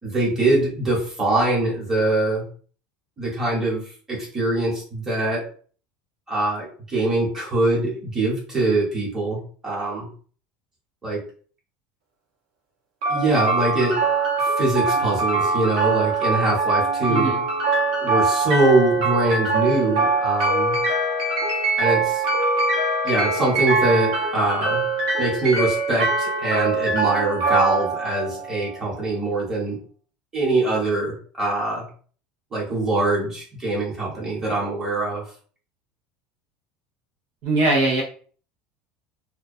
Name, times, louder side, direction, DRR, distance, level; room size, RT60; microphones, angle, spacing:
voice 1, 0.0-2.4 3.2-3.8 4.1-5.4 6.3-10.1 11.0-11.2 13.1-14.0 14.4-17.3 18.0-20.8 21.8-22.2 23.0-24.8 25.2-29.8 30.3-31.8 32.5-35.2, right 2 dB, 15° right, -5 dB, 1.1 m, -23 dB
sound 1, 13.0-29.0, right 3 dB, 90° right, 1.0 m, -23 dB
voice 2, 17.1-17.4 37.4-38.0, right 2 dB, 55° right, -1 dB, 0.6 m, -21 dB
2.3 x 2.2 x 2.6 m, 0.43 s
cardioid pair, 160°, 3 cm